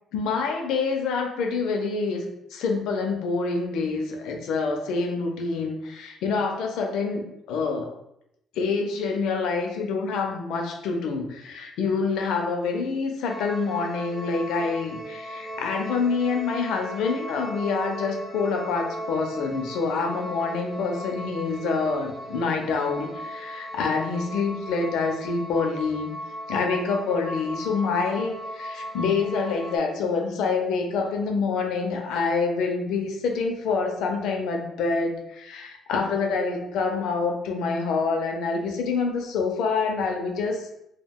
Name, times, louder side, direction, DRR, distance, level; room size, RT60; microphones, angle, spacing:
voice 1, 0.1-7.9 8.6-26.1 26.5-40.7, left 4 dB, 80° left, 2 dB, 0.5 m, -26 dB
sound 1, 13.2-29.8, equal, 25° left, 0.3 m, -37 dB
2.3 x 2.2 x 3.4 m, 0.80 s
cardioid pair, 175°, 0 cm